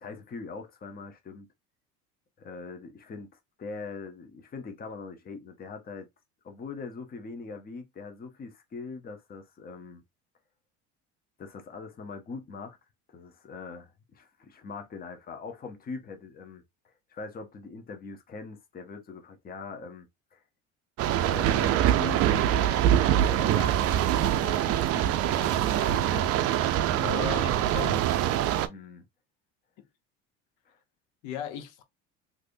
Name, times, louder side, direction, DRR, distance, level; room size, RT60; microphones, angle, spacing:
voice 1, 0.0-1.5 2.4-3.3 3.6-6.1 6.4-10.0 11.4-12.8 13.1-16.6 17.1-20.4 21.3-27.9 28.7-29.0 30.7-30.8, left 4 dB, 30° left, 0.8 m, -42 dB
sound 1, 21.0-28.7, right 11 dB, 50° right, 0.5 m, -24 dB
voice 2, 27.0-28.1 31.2-31.8, left 10 dB, 70° left, 0.8 m, -36 dB
3.2 x 2.6 x 2.6 m
supercardioid pair, 105°, 32 cm